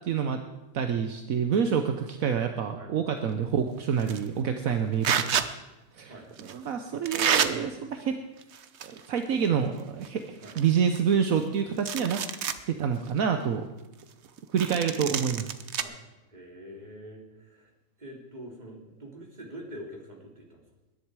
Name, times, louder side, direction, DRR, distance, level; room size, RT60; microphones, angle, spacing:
voice 1, 0.0-0.4 0.7-5.4 5.9-6.1 6.4-8.2 8.8-10.2 10.6-12.2 12.7-13.6 14.5-15.5, right 7 dB, 70° right, 7 dB, 1.3 m, -27 dB
sound 1, 4.0-4.3 5.0-5.5 6.4-6.5 7.0-7.5 8.4-9.1 9.4-9.5 10.0-10.1 10.4-11.4 11.8-12.6 13.1-13.2 14.6-15.8, right 8 dB, 55° right, 1.0 m, -28 dB
voice 2, 6.1-6.4 10.4-10.6 15.8-16.0 16.3-17.7 18.0-20.6, equal, 30° right, 0 dB, 3.0 m, -45 dB
21.0 x 10.5 x 4.8 m, 1.0 s
omnidirectional pair, 1.5 m